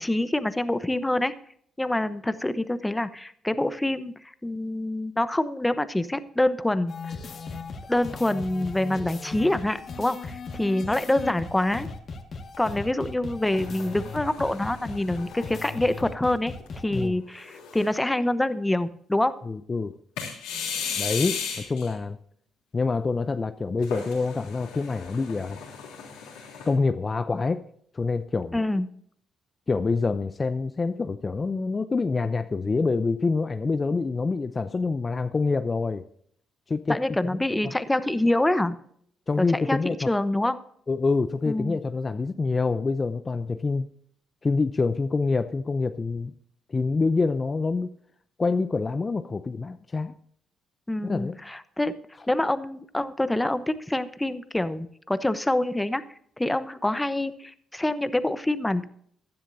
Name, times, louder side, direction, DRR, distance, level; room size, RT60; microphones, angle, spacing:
voice 1, 0.0-1.3 1.8-4.1 4.4-6.9 7.9-11.9 12.6-16.5 16.8-19.3 28.5-28.9 36.9-38.8 39.4-40.6 41.5-41.8 50.9-51.9 52.3-56.0 56.4-58.9, left 1 dB, 10° left, 13 dB, 0.9 m, -26 dB
sound 1, 6.9-17.1, left 4 dB, 55° left, 1.9 m, -38 dB
sound 2, 13.5-16.0 16.6-16.7 17.4-18.1 20.2-21.9 23.8-26.7, left 6 dB, 85° left, 3.2 m, -36 dB
voice 2, 19.4-20.0 21.0-22.2 22.7-25.6 26.7-27.6 27.9-28.6 29.7-36.0 36.7-37.0 37.6-37.7 39.3-40.1 40.9-43.9 44.4-46.3 46.7-47.9 48.4-50.2 51.0-51.4, left 4 dB, 35° left, 10 dB, 0.6 m, -26 dB
15.0 x 10.0 x 2.7 m, 0.64 s
supercardioid pair, 60°, 0 cm